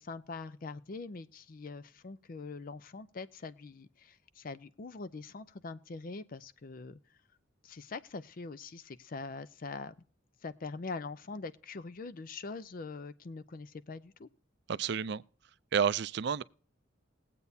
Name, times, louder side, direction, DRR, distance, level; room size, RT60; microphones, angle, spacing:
voice 1, 0.0-7.0 7.6-9.9 10.4-14.3, left 4 dB, 45° left, 0.5 m, -43 dB
voice 2, 14.7-15.2 15.7-16.4, right 7 dB, 60° right, 0.4 m, -30 dB
20.5 x 8.2 x 2.7 m
head